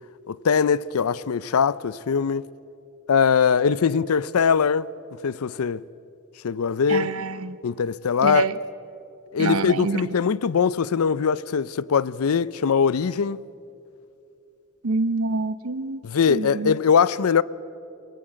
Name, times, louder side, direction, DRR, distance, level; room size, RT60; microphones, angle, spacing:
voice 1, 0.3-2.5 3.1-4.9 5.2-5.8 6.4-7.1 7.6-8.4 9.3-13.4 16.0-17.4, left 6 dB, 85° left, 0.5 m, -21 dB
voice 2, 6.9-7.6 8.2-8.5 9.4-10.0 14.8-16.0 16.3-16.7, right 3 dB, 75° right, 0.9 m, -26 dB
22.0 x 20.0 x 9.0 m
head